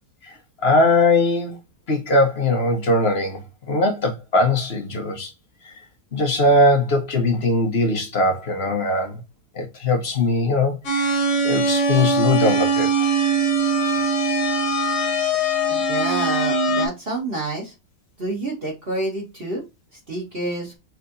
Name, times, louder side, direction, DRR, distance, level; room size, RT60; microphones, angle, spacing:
voice 1, 0.6-1.6 1.9-3.4 3.7-5.3 5.6-5.7 6.1-9.2 9.5-12.9, left 2 dB, 40° left, 1.1 m, -20 dB
sound 1, 10.8-16.9, right 2 dB, 65° left, 1.7 m, -21 dB
voice 2, 15.7-17.7 18.2-19.6 20.1-20.7, right 2 dB, 35° right, 1.6 m, -28 dB
5.7 x 3.3 x 2.7 m
omnidirectional pair, 1.9 m